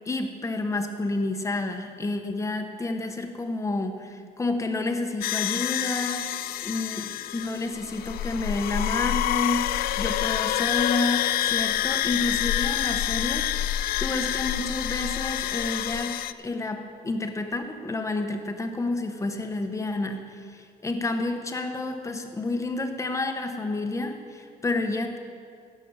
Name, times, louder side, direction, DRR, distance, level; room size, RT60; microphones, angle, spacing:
voice 1, 0.0-25.2, left 2 dB, 20° left, 6 dB, 1.1 m, -30 dB
sound 1, 5.2-16.3, left 13 dB, 60° left, 0.4 m, -27 dB
16.0 x 6.4 x 7.0 m, 2.3 s
cardioid pair, 110°, 17 cm